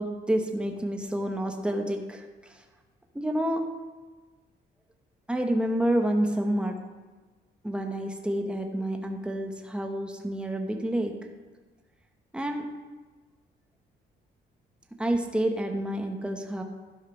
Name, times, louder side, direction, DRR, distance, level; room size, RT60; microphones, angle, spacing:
voice 1, 0.0-2.2 3.1-3.7 5.3-6.8 7.6-11.1 12.3-12.8 15.0-16.6, right 1 dB, 5° right, 3 dB, 1.1 m, -28 dB
12.5 x 4.9 x 5.7 m, 1.3 s
cardioid pair, 90°, 20 cm